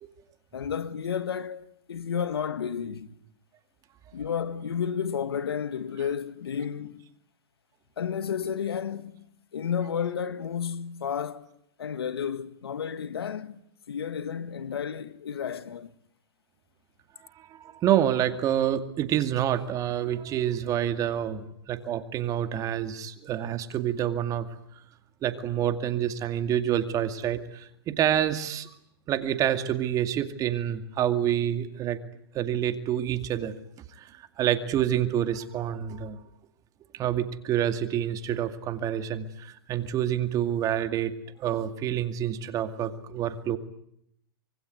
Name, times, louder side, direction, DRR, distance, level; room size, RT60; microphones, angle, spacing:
voice 1, 0.5-3.2 4.1-7.0 8.0-9.3 9.5-11.5 11.8-13.6 13.9-15.9, left 7 dB, 80° left, 1.7 m, -32 dB
voice 2, 17.4-24.5 25.2-28.7 29.1-32.0 32.3-33.5 34.0-36.2 36.9-41.1 41.4-43.6, right 10 dB, 25° right, 2.3 m, -27 dB
25.0 x 24.0 x 9.4 m
hypercardioid pair, 130°, 13 cm